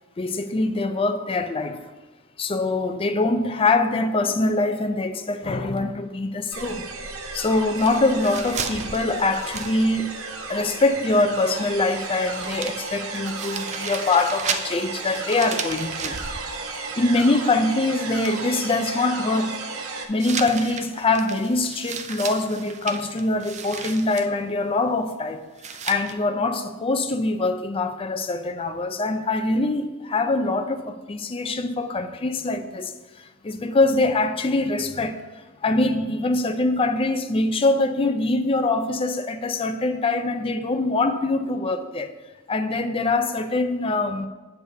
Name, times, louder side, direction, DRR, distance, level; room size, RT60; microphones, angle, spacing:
voice 1, 0.2-1.8 2.4-6.8 7.3-10.1 10.5-16.2 17.0-19.6 20.1-25.4 25.8-35.3 35.6-42.1 42.5-44.3, left 2 dB, 25° left, 0.4 m, -23 dB
sound 1, 6.5-20.1, right 3 dB, 65° right, 0.8 m, -34 dB
sound 2, 7.8-10.3 10.6-10.7 11.9-12.0 12.3-17.6 18.0-18.6 20.2-24.3 25.6-26.1, right 6 dB, 35° right, 0.4 m, -35 dB
8.0 x 6.8 x 2.7 m
head